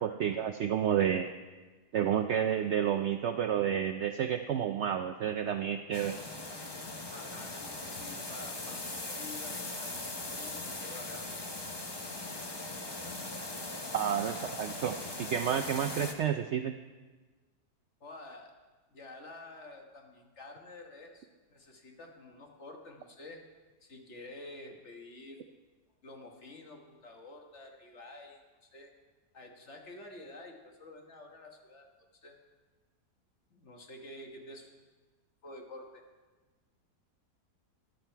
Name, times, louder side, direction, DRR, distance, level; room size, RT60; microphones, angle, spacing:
voice 1, 0.0-1.3 1.9-6.2 13.9-16.7, right 9 dB, 90° right, 6 dB, 0.6 m, -30 dB
sound 1, 5.9-16.1, left 2 dB, 25° left, 0.6 m, -40 dB
voice 2, 7.1-11.3 18.0-18.5 18.9-23.4 23.8-25.4 26.0-28.9 29.3-31.9 32.2-32.3 33.5-34.7 35.4-36.0, left 2 dB, 45° left, 2 dB, 1.6 m, -49 dB
14.0 x 10.5 x 4.5 m, 1.3 s
omnidirectional pair, 1.7 m